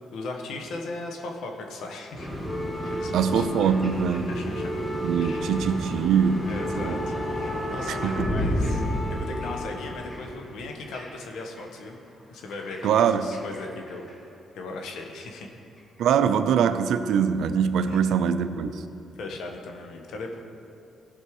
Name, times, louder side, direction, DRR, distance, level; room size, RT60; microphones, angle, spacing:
voice 1, 0.1-2.3 2.8-3.4 4.3-4.7 5.2-5.4 6.4-8.8 9.1-12.0 12.3-14.1 14.5-15.5 17.9-18.0 19.2-20.4, left 3 dB, 80° left, 3 dB, 1.3 m, -37 dB
sound 1, 2.1-11.6 12.5-13.6 13.9-14.1 15.0-15.1, equal, 20° left, 2.3 m, -31 dB
voice 2, 3.1-4.3 5.0-6.5 6.8-6.9 7.9-8.5 12.8-13.3 16.0-18.8, right 7 dB, 75° right, 11 dB, 0.5 m, -23 dB
15.5 x 5.5 x 4.9 m, 2.6 s
cardioid pair, 90°, 0 cm